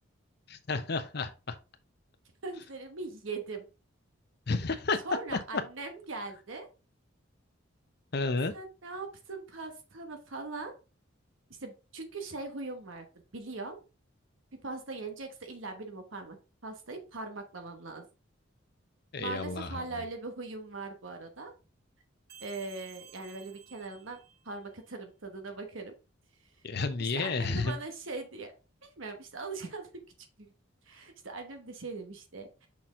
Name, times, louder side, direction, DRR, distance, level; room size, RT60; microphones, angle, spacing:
voice 1, 0.5-1.6 4.5-5.0 8.1-8.5 19.1-20.0 26.6-27.8, left 3 dB, 50° left, 0.8 m, -31 dB
voice 2, 2.4-3.6 5.0-6.7 8.5-10.7 11.6-13.1 13.3-13.8 14.6-16.4 16.6-18.1 19.2-21.5 22.4-24.2 24.4-26.0 27.0-28.5 28.8-30.0 30.4-30.5 30.8-32.7, right 3 dB, 75° right, 1.1 m, -40 dB
sound 1, 22.3-24.9, right 8 dB, 50° right, 0.9 m, -54 dB
6.0 x 4.3 x 3.7 m
head